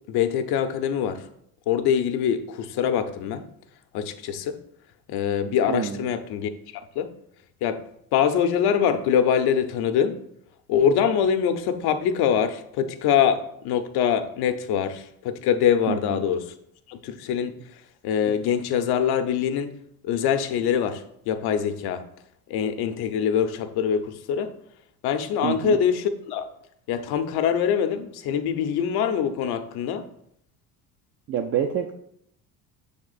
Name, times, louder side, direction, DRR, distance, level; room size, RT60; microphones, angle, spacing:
voice 1, 0.1-1.3 1.7-3.5 3.9-4.6 5.1-7.1 7.6-7.8 8.1-10.2 10.7-16.5 16.9-19.8 20.0-22.0 22.5-24.5 25.0-26.5 26.9-30.1, left 8 dB, 55° left, 8 dB, 0.7 m, -24 dB
voice 2, 5.7-6.0 15.9-16.2 25.4-25.8 31.3-31.9, right 9 dB, 30° right, 4 dB, 0.5 m, -27 dB
6.5 x 3.6 x 4.0 m, 0.71 s
hypercardioid pair, 70°, 45 cm